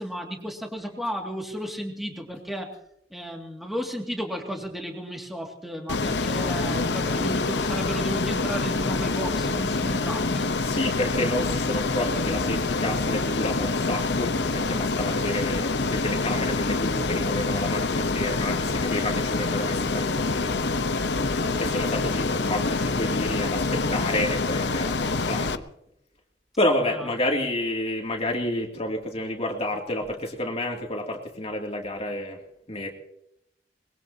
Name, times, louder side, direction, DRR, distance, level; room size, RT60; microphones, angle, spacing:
voice 1, 0.0-2.8 3.1-10.5, equal, ahead, 1 dB, 2.3 m, -33 dB
Ocean, 5.9-25.5, left 3 dB, 75° left, 0.9 m, -26 dB
voice 2, 10.6-20.5 21.6-25.6 26.6-32.4 32.7-32.9, left 1 dB, 35° left, 0 dB, 2.7 m, -30 dB
23.5 x 22.0 x 2.8 m, 0.78 s
head